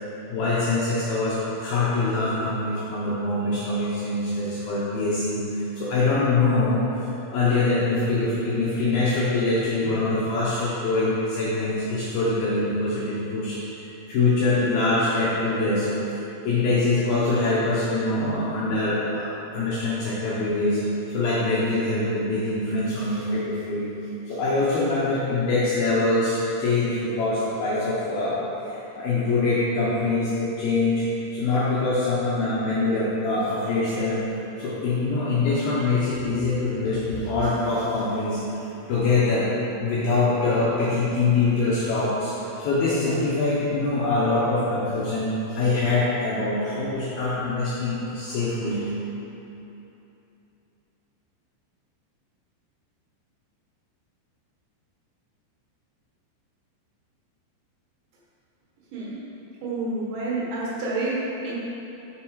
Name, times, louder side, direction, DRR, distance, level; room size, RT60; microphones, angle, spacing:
voice 1, 0.0-13.8 14.1-15.9 16.4-23.9 24.3-34.3 34.6-39.5 39.8-48.9, left 3 dB, 80° left, -8 dB, 2.1 m, -24 dB
voice 2, 59.6-61.2 61.4-61.6, right 2 dB, 70° right, -6 dB, 3.5 m, -28 dB
7.3 x 7.3 x 4.7 m, 3.0 s
omnidirectional pair, 5.8 m